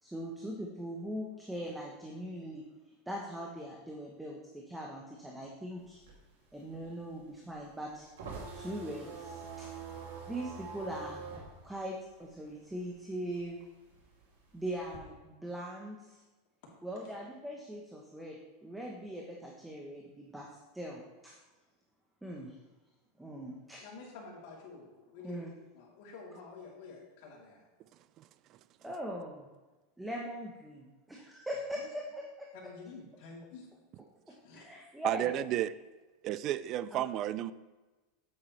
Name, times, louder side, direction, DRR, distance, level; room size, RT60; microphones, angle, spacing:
voice 1, 0.0-2.6 3.1-6.0 6.5-8.1 8.5-9.7 10.3-11.2 11.6-13.6 14.5-16.2 16.8-20.5 20.7-21.3 22.2-22.5 23.2-23.8 25.2-25.5 28.8-29.5 30.0-32.3 34.6-35.3 36.9-37.0, equal, 5° right, -2 dB, 0.9 m, -41 dB
sound 1, 5.8-12.9 13.2-15.0, right 4 dB, 85° right, 2.6 m, -45 dB
voice 2, 23.8-25.5 25.7-27.6 31.7-31.8 32.6-33.7 34.4-34.6, left 4 dB, 60° left, -4 dB, 3.2 m, -49 dB
voice 3, 35.0-35.7 36.2-37.5, right 12 dB, 40° right, 16 dB, 0.3 m, -32 dB
8.8 x 8.6 x 3.3 m, 1.2 s
supercardioid pair, 145°, 0 cm